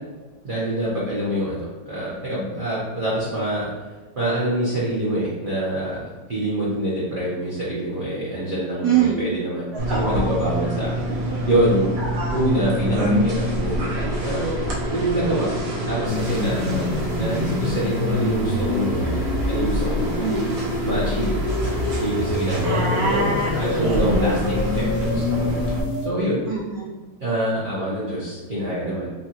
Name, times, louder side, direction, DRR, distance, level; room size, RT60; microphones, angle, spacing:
voice 1, 0.4-3.7 4.2-11.9 12.3-14.5 14.9-15.5 15.9-20.2 20.8-21.4 22.0-23.2 23.6-25.5 26.0-26.4 27.2-29.1, right 1 dB, 45° right, -8 dB, 0.7 m, -25 dB
voice 2, 8.8-9.2 9.9-10.3 12.1-12.4 20.2-20.5 22.6-24.1 26.5-26.9, right 5 dB, 75° right, -5 dB, 1.3 m, -24 dB
sound 1, 9.8-25.8, equal, 60° right, 1.2 m, -26 dB
sound 2, 16.1-26.1, left 3 dB, 85° left, 0.6 m, -27 dB
5.5 x 2.4 x 2.8 m, 1.3 s
omnidirectional pair, 1.9 m